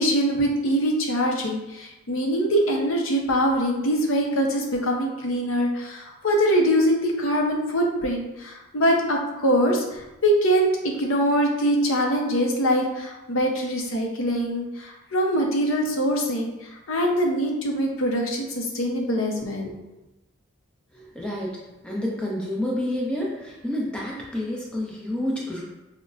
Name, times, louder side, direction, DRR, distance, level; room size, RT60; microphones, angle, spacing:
voice 1, 0.0-19.7, equal, 80° left, 1 dB, 0.7 m, -23 dB
voice 2, 21.2-21.5 21.8-23.3 23.6-25.6, left 1 dB, 5° left, -4 dB, 0.6 m, -28 dB
5.1 x 2.1 x 2.4 m, 0.99 s
head